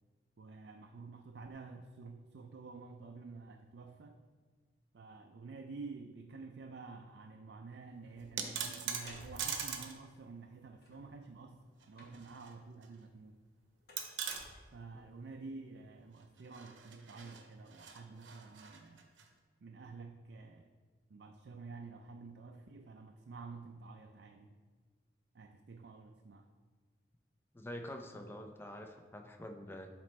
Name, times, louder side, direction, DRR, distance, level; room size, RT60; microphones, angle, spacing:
voice 1, 0.4-4.2 4.9-13.4 14.7-19.1 19.6-20.7 21.1-24.6 25.3-26.5, right 4 dB, 65° right, 4 dB, 0.4 m, -50 dB
sound 1, 8.0-9.9 10.7-11.3 12.0-12.5 13.9-15.2, left 1 dB, 55° left, 1.1 m, -56 dB
sound 2, 8.2-10.0 10.3-10.4 11.8-12.5 12.8-12.9 14.0-14.5 16.4-19.3, right 7 dB, 90° right, 0.8 m, -42 dB
voice 2, 27.5-29.9, left 1 dB, 10° left, 5 dB, 0.5 m, -46 dB
11.0 x 4.4 x 3.1 m, 1.4 s
head